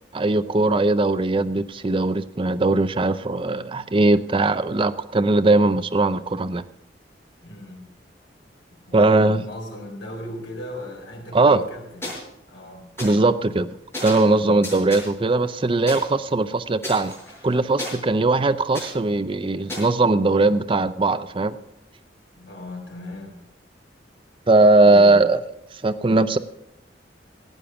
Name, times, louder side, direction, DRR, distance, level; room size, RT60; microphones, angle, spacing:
voice 1, 0.1-6.6 8.9-9.4 11.3-11.6 13.0-13.7 14.0-17.2 17.4-21.6 24.5-25.4 25.8-26.4, right 2 dB, 30° right, 11 dB, 0.5 m, -19 dB
voice 2, 7.4-7.9 8.7-12.1 12.5-12.9 14.3-14.7 22.4-23.4 24.8-25.4, left 1 dB, 80° left, 0 dB, 4.2 m, -37 dB
sound 1, 12.0-12.2 13.0-13.1 13.9-14.3 14.6-15.1 15.9-16.0 16.8-17.9 18.7-18.9 19.7-19.8, left 1 dB, 15° left, 6.6 m, -32 dB
16.0 x 8.7 x 5.9 m, 0.85 s
head